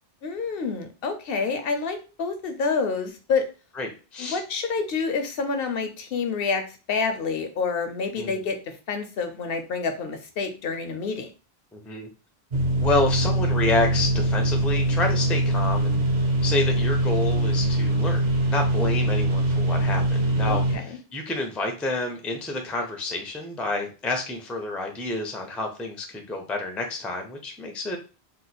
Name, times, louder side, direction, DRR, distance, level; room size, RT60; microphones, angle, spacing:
voice 1, 0.2-3.4 4.2-11.3 20.5-21.0, left 4 dB, 65° left, 7 dB, 0.8 m, -28 dB
voice 2, 3.8-4.4 8.2-8.4 11.7-12.1 12.8-16.0 16.4-28.0, left 2 dB, ahead, 3 dB, 0.3 m, -29 dB
sound 1, 12.5-20.8, right 1 dB, 50° right, 0.7 m, -23 dB
3.0 x 2.0 x 4.0 m, 0.33 s
omnidirectional pair, 1.1 m